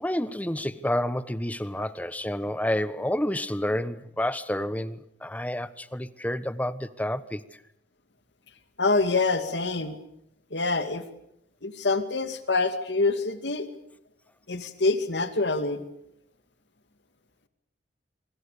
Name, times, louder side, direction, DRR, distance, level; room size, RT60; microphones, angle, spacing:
voice 1, 0.0-7.4, left 1 dB, 10° left, 1.0 m, -29 dB
voice 2, 8.8-10.0 10.5-11.0 11.6-13.7 14.5-15.8, left 3 dB, 85° left, 2.3 m, -26 dB
26.5 x 24.5 x 6.8 m
head